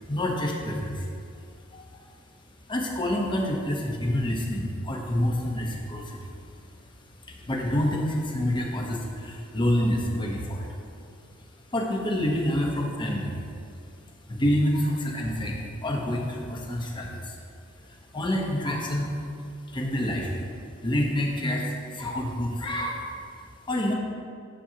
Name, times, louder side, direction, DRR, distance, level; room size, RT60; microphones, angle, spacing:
voice 1, 0.0-1.1 1.7-2.0 2.7-6.3 7.3-10.8 11.2-11.3 11.7-13.4 13.7-13.8 14.3-17.4 17.8-19.1 19.7-20.5 20.8-23.1 23.7-23.9, left 1 dB, 25° left, -1 dB, 1.0 m, -28 dB
10.0 x 7.1 x 2.9 m, 2.4 s
head